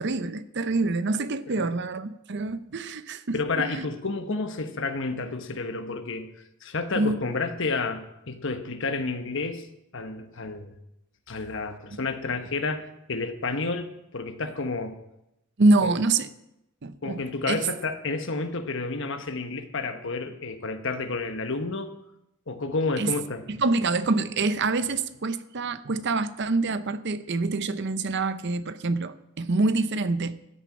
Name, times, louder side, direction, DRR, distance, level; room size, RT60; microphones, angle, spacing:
voice 1, 0.0-3.9 7.0-7.2 11.9-12.0 15.6-16.3 16.8-17.6 23.0-23.1 23.6-30.4, right 3 dB, 55° right, 0.7 m, -26 dB
voice 2, 3.3-6.3 6.6-9.7 9.9-10.7 11.3-15.0 15.8-15.9 17.0-21.9 22.5-23.4, left 3 dB, 60° left, 1.2 m, -30 dB
14.0 x 6.7 x 8.7 m
head